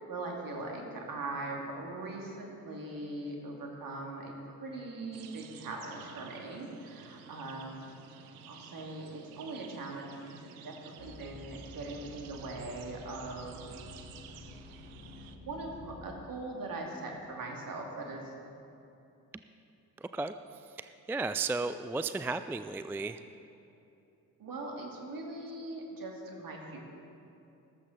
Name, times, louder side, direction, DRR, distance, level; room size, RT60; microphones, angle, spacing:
voice 1, 0.1-7.8 8.5-10.4 10.6-13.8 15.3-18.3 24.4-26.8, right 2 dB, 50° right, 0 dB, 2.6 m, -41 dB
sound 1, 5.1-15.4, right 9 dB, 80° right, 0.7 m, -52 dB
sound 2, 11.0-16.2, left 3 dB, 55° left, 1.7 m, -50 dB
voice 2, 20.0-20.3 20.7-23.2, right 3 dB, 5° right, 11 dB, 0.3 m, -34 dB
14.5 x 13.0 x 4.2 m, 2.8 s
hypercardioid pair, 40°, 42 cm